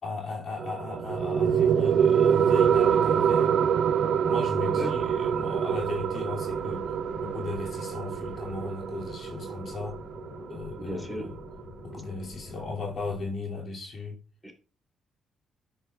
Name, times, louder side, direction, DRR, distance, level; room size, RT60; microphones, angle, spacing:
voice 1, 0.0-3.6 4.2-10.0 10.5-11.4 11.8-14.2, left 3 dB, 50° left, 2.3 m, -37 dB
sound 1, 0.6-11.6, right 8 dB, 65° right, 0.4 m, -25 dB
sound 2, 4.6-13.3, left 4 dB, 70° left, 3.1 m, -46 dB
voice 2, 10.8-11.2 14.4-14.5, equal, 5° left, 2.7 m, -35 dB
10.0 x 8.5 x 2.2 m
cardioid pair, 90°, 0 cm